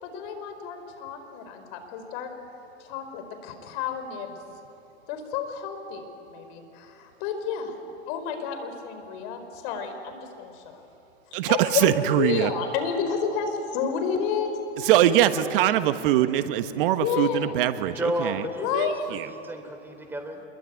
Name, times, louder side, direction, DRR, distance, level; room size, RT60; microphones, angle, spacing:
voice 1, 0.0-2.3 2.8-4.4 5.1-6.0 6.3-7.8 8.1-10.8 11.5-14.5 14.8-15.8 17.0-17.7 18.6-19.0, left 6 dB, 45° left, 7 dB, 4.8 m, -30 dB
voice 2, 11.3-12.5 14.8-18.4 18.7-19.3, right 12 dB, 50° right, 11 dB, 1.4 m, -22 dB
voice 3, 17.9-18.9 19.3-20.4, equal, 5° right, 5 dB, 3.2 m, -31 dB
27.0 x 22.5 x 9.5 m, 2.9 s
hypercardioid pair, 120°, 34 cm